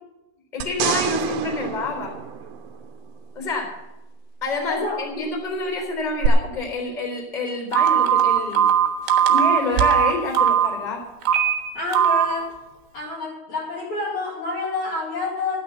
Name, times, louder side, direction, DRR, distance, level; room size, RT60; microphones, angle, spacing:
voice 1, 0.5-2.1 3.3-3.7 4.4-8.7 9.3-11.0, left 3 dB, 10° left, 0 dB, 3.0 m, -27 dB
sound 1, 0.6-3.1 6.2-6.3, right 12 dB, 85° right, 3.4 m, -27 dB
voice 2, 4.7-5.0 11.7-12.5 12.9-15.6, left 3 dB, 45° left, -4 dB, 3.1 m, -28 dB
Telephone, 7.7-10.7 11.2-11.5 11.9-12.3, right 9 dB, 70° right, 3.0 m, -18 dB
13.5 x 9.3 x 6.8 m, 0.98 s
omnidirectional pair, 5.6 m